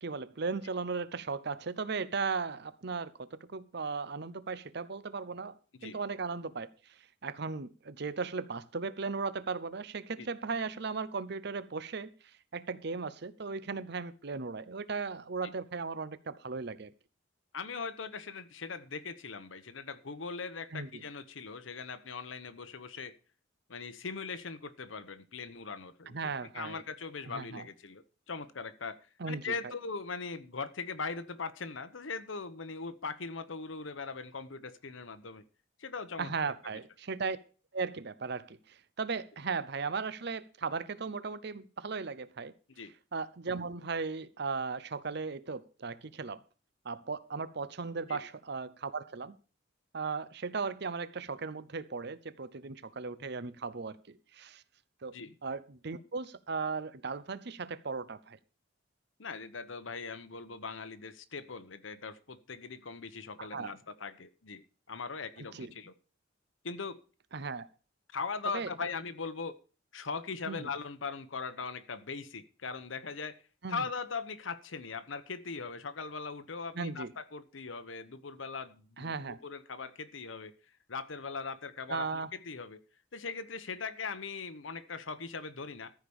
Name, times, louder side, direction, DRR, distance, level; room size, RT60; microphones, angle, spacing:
voice 1, 0.0-12.1 12.5-16.9 20.7-21.0 26.1-26.8 27.3-27.7 29.2-29.7 36.2-37.4 37.7-42.5 43.1-46.4 46.8-49.4 49.9-54.0 54.3-54.6 55.0-58.4 63.4-63.7 65.4-65.7 67.3-67.7 68.5-68.7 70.5-70.7 73.6-73.9 76.7-77.1 79.0-79.4 81.9-82.3, right 4 dB, 55° right, 0.7 m, -37 dB
voice 2, 17.5-23.2 23.7-29.0 29.3-35.4 35.8-36.5 42.8-42.9 48.1-48.2 55.1-55.3 59.2-65.9 66.6-67.0 68.1-69.6 69.9-73.4 73.7-79.1 79.4-80.6 80.9-82.8 83.1-85.9, left 4 dB, 80° left, 1.0 m, -40 dB
14.0 x 5.0 x 7.1 m
head